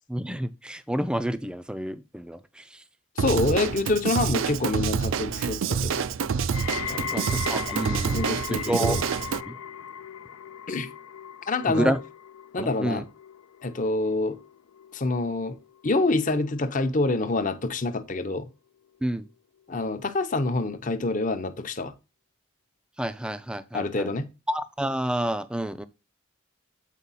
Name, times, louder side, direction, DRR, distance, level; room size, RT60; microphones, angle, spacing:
voice 1, 0.1-2.8 7.1-8.2 8.5-9.0 9.4-9.6 11.7-12.0 12.6-13.0 19.0-19.3 23.0-24.1 24.5-25.9, right 1 dB, 5° right, 0.4 m, -29 dB
voice 2, 3.2-6.0 6.9-7.2 7.9-9.0 10.7-10.9 11.5-11.9 12.5-13.1 13.6-14.4 14.9-15.6 15.8-18.5 19.7-21.9 23.7-24.3, left 2 dB, 40° left, 0.7 m, -26 dB
Drum kit / Drum, 3.2-9.4, right 6 dB, 70° right, 0.4 m, -27 dB
sound 1, 6.5-17.6 17.9-18.5 19.2-19.3, left 9 dB, 75° left, 0.4 m, -39 dB
8.3 x 4.6 x 4.1 m
head